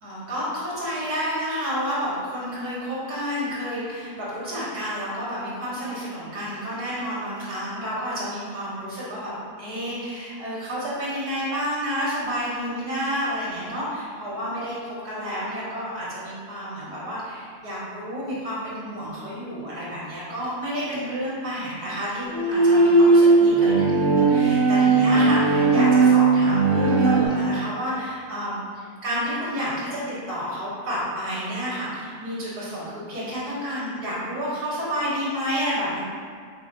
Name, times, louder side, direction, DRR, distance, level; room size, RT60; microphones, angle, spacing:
voice 1, 0.0-36.0, equal, 65° right, -9 dB, 1.9 m, -30 dB
Bowed string instrument, 22.2-27.3, right 3 dB, 80° right, 0.3 m, -17 dB
5.4 x 3.2 x 2.6 m, 2.1 s
omnidirectional pair, 1.8 m